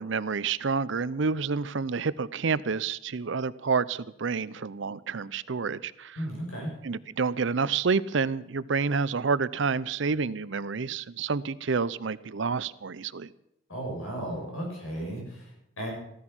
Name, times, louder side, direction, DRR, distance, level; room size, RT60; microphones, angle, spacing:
voice 1, 0.0-6.2 6.8-13.3, right 5 dB, 65° right, 18 dB, 0.6 m, -29 dB
voice 2, 6.1-6.7 13.7-15.9, right 1 dB, 85° left, -1 dB, 8.0 m, -35 dB
15.5 x 13.5 x 6.2 m, 0.80 s
head